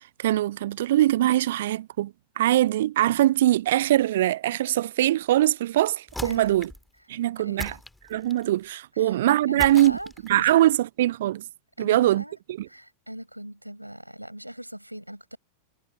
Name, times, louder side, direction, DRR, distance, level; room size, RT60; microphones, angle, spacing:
voice 1, 0.2-6.7 7.1-7.7 8.1-10.0 10.2-11.4 11.8-12.2 12.6-12.7, right 14 dB, 55° right, 0.4 m, -22 dB
sound 1, 6.1-6.9 7.6-8.5 9.6-10.5, left 1 dB, 5° left, 2.4 m, -38 dB
voice 2, 6.2-6.7 7.4-7.8 8.9-9.2 9.5-10.1 10.4-10.7 11.8-12.4 12.7-15.4, right 1 dB, 90° right, 7.4 m, -40 dB
figure-of-eight pair, 90°, 0 cm